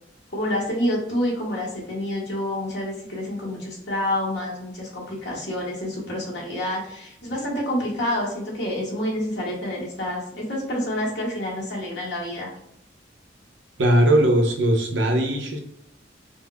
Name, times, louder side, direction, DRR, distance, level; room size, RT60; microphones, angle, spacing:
voice 1, 0.3-12.5, left 1 dB, 70° left, -4 dB, 1.3 m, -28 dB
voice 2, 13.8-15.6, right 1 dB, 80° right, 3 dB, 0.7 m, -19 dB
5.2 x 2.1 x 2.3 m, 0.73 s
head